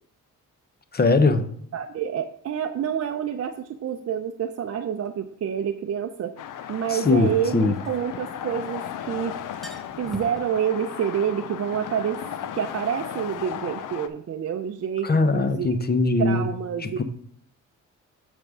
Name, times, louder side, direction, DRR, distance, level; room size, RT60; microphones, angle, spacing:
voice 1, 0.9-1.4 6.9-7.8 15.0-16.5 16.8-17.0, left 3 dB, 30° left, 9 dB, 0.8 m, -21 dB
voice 2, 1.7-6.4 6.7-9.4 10.0-12.2 12.5-15.8 16.2-17.0, right 8 dB, 50° right, 5 dB, 0.6 m, -28 dB
sound 1, 5.1-5.2 7.5-8.8 9.1-9.2 9.4-10.5, equal, ahead, 1.0 m, -41 dB
sound 2, 6.4-14.1, left 9 dB, 75° left, 0.7 m, -36 dB
7.7 x 3.6 x 6.2 m, 0.62 s
cardioid pair, 80°, 32 cm